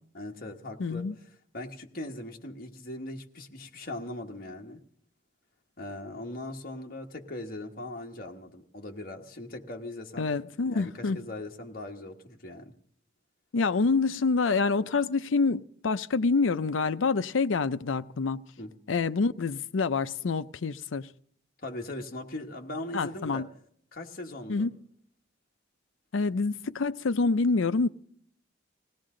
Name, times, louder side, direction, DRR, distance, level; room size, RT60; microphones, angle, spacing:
voice 1, 0.1-1.1 1.5-4.8 5.8-10.3 10.6-12.7 18.6-18.7 21.6-23.4 23.9-24.7, left 1 dB, 50° left, 1.4 m, -40 dB
voice 2, 0.8-1.1 10.2-11.2 13.5-18.4 18.9-21.1 22.9-23.5 24.5-24.7 26.1-27.9, left 4 dB, 80° left, 0.5 m, -27 dB
20.0 x 17.0 x 3.8 m
head